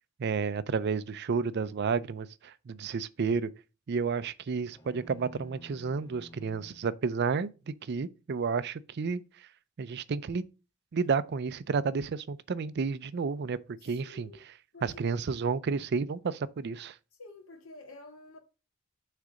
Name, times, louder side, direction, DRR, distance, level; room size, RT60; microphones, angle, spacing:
voice 1, 0.2-3.5 3.9-9.5 9.8-10.4 10.9-17.0, right 5 dB, 50° right, 0.4 m, -31 dB
sound 1, 4.7-7.0, left 1 dB, 20° left, 0.8 m, -52 dB
voice 2, 14.0-14.4 14.7-15.1 17.2-18.4, left 2 dB, 70° left, 1.9 m, -49 dB
6.5 x 3.8 x 6.2 m
head